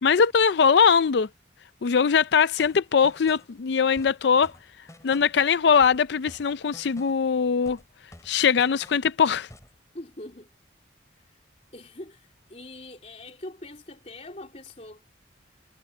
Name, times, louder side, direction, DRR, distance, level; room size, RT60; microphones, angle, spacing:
voice 1, 0.0-1.3 1.8-4.5 5.0-7.8 8.3-9.5, left 6 dB, 60° left, 0.4 m, -21 dB
sound 1, 2.6-3.5 4.0-5.4 5.8-7.3 7.7-9.1 9.5-9.8, left 1 dB, 15° left, 4.1 m, -50 dB
voice 2, 9.9-10.5 11.2-11.4 11.7-15.0, left 1 dB, 35° left, 3.2 m, -43 dB
head